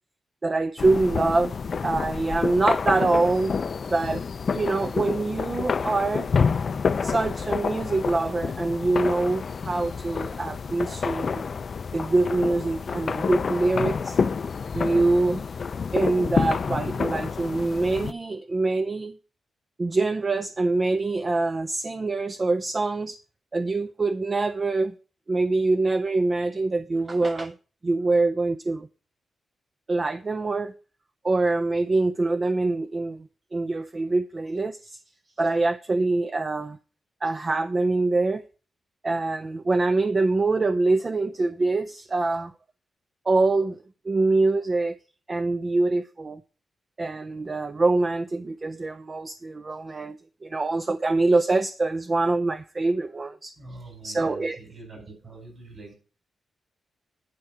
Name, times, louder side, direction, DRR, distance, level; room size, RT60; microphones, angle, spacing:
voice 1, 0.4-1.5 1.8-3.5 3.9-4.2 4.5-6.3 7.0-11.4 11.9-14.2 14.7-15.4 15.9-19.1 19.8-23.2 23.5-24.9 25.3-27.5 27.8-28.9 29.9-30.7 31.2-35.0 35.4-36.8 37.2-38.4 39.0-42.5 43.3-43.8 44.1-45.0 45.3-46.4 47.0-53.5 54.0-54.6, right 3 dB, 30° right, 0.4 m, -24 dB
sound 1, 0.8-18.1, left 5 dB, 45° left, 0.4 m, -28 dB
voice 2, 53.6-55.9, right 2 dB, 45° right, 4.9 m, -44 dB
10.5 x 4.9 x 5.8 m
cardioid pair, 115°, 0 cm